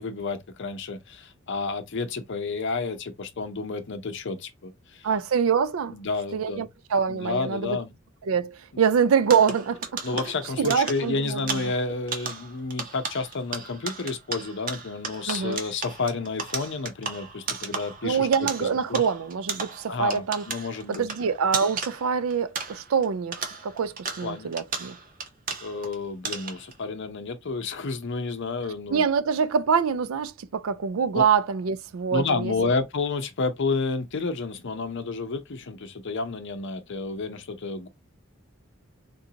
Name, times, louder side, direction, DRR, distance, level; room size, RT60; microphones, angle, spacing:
voice 1, 0.0-5.1 5.9-6.7 7.1-7.9 10.0-18.3 18.6-19.0 19.9-21.0 24.2-24.5 25.6-29.0 31.1-31.2 32.1-37.9, left 4 dB, 60° left, 0.7 m, -30 dB
voice 2, 5.0-5.9 6.3-7.8 8.3-10.0 10.6-11.6 15.3-15.6 17.8-20.4 20.9-25.0 28.9-32.5, right 6 dB, 75° right, 0.4 m, -25 dB
sound 1, 9.2-23.1 23.3-25.9 26.2-26.7, right 5 dB, 40° right, 0.7 m, -35 dB
3.8 x 2.6 x 2.7 m
head